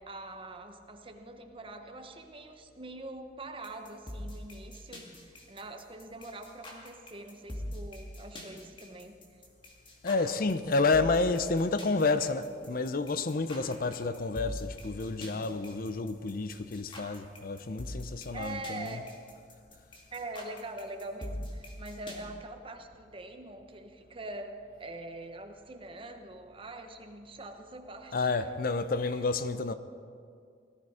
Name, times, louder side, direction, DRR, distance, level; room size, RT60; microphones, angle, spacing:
voice 1, 0.0-9.2 18.3-19.1 20.1-28.4, right 2 dB, 30° right, 1.1 m, -44 dB
sound 1, 3.6-22.2, left 1 dB, 30° left, 2.3 m, -44 dB
voice 2, 10.0-19.0 28.1-29.7, left 3 dB, 55° left, 0.6 m, -30 dB
18.0 x 13.5 x 4.9 m
head